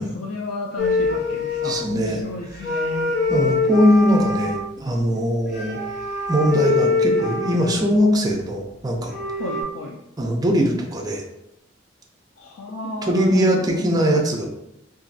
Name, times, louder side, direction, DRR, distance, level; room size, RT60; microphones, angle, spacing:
voice 1, 0.0-3.1 9.4-10.0 12.4-13.8, left 2 dB, 85° left, 0 dB, 0.3 m, -33 dB
sound 1, 0.8-2.1 2.5-4.6 5.5-8.0 8.7-8.8 8.9-9.6, left 3 dB, 55° left, 0.8 m, -24 dB
voice 2, 1.6-2.2 3.3-5.8 6.3-9.1 10.2-11.2 13.0-14.4, equal, 20° right, 1 dB, 0.4 m, -20 dB
3.0 x 2.5 x 2.6 m, 0.84 s
head